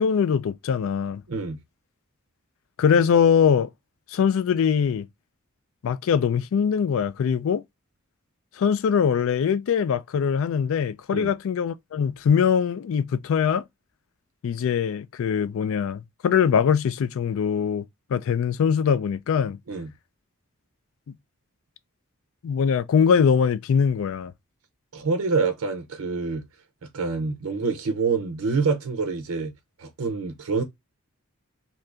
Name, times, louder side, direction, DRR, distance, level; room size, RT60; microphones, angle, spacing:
voice 1, 0.0-1.2 2.8-3.7 4.1-5.1 5.8-7.6 8.6-13.6 14.4-17.9 18.1-19.6 22.4-24.3, left 7 dB, 60° left, 0.3 m, -22 dB
voice 2, 24.9-26.4 26.9-29.5 29.8-30.6, right 4 dB, 70° right, 0.6 m, -26 dB
2.7 x 2.5 x 3.3 m
head